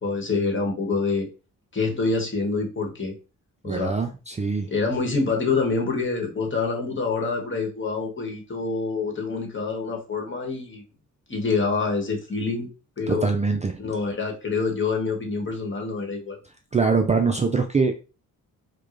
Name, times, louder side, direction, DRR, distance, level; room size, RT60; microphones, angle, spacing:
voice 1, 0.0-1.3 1.7-3.1 3.6-4.0 4.7-10.8 11.3-12.7 13.0-13.3 13.8-16.4, left 4 dB, 35° left, 1 dB, 1.2 m, -26 dB
voice 2, 3.6-4.7 13.1-13.8 16.7-18.0, right 4 dB, 20° right, 4 dB, 0.4 m, -23 dB
4.7 x 2.2 x 2.5 m, 0.32 s
cardioid pair, 90°, 33 cm